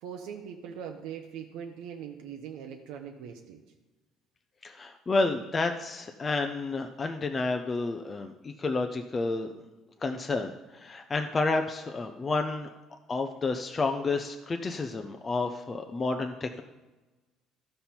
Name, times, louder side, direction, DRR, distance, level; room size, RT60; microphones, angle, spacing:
voice 1, 0.0-3.6, right 8 dB, 80° right, 3 dB, 0.8 m, -41 dB
voice 2, 4.6-9.5 10.0-12.7 13.1-16.6, left 3 dB, 20° left, 5 dB, 0.4 m, -30 dB
13.5 x 5.4 x 4.3 m, 1.2 s
cardioid pair, 160°, 0 cm